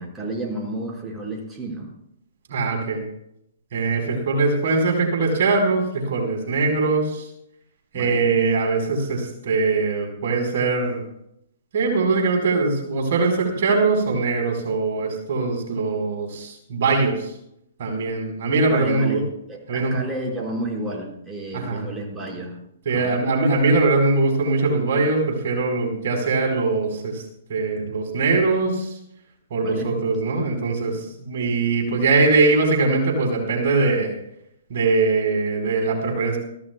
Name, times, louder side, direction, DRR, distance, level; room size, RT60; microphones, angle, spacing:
voice 1, 0.0-1.9 7.9-8.3 18.7-22.5 22.9-23.2 29.6-29.9, right 2 dB, 10° right, -3 dB, 5.1 m, -31 dB
voice 2, 2.5-3.0 3.7-7.3 7.9-11.0 11.7-17.3 17.8-19.2 19.7-20.0 21.5-21.8 22.8-27.2 27.5-29.0 29.5-34.1 34.7-36.4, right 3 dB, 60° right, 2 dB, 4.5 m, -21 dB
24.0 x 15.0 x 2.3 m, 0.77 s
hypercardioid pair, 125°, 0 cm